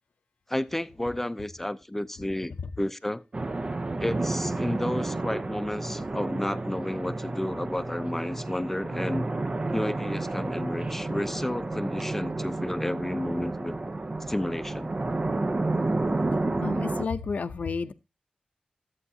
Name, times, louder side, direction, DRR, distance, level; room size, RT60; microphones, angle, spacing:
voice 1, 0.5-3.2 4.0-9.3 9.7-13.7 14.3-14.9, left 1 dB, 10° left, 0.7 m, -31 dB
sound 1, 3.3-17.0, right 2 dB, 40° right, 0.7 m, -31 dB
voice 2, 16.6-17.9, left 5 dB, 75° left, 0.7 m, -31 dB
14.0 x 8.3 x 2.7 m
wide cardioid pair, 90°, 3 cm